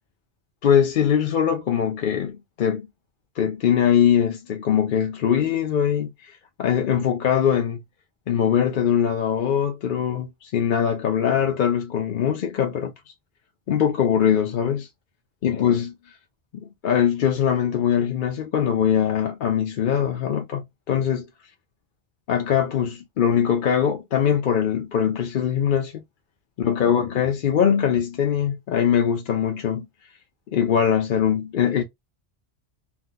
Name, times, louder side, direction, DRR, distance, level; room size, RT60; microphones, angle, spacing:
voice 1, 0.6-2.9 3.4-6.3 6.6-7.8 8.3-12.9 13.7-14.9 15.4-16.0 16.5-21.3 22.3-26.0 26.6-29.9 30.5-31.8, left 8 dB, 60° left, 0.7 m, -22 dB
2.8 x 2.1 x 3.7 m
omnidirectional pair, 1.1 m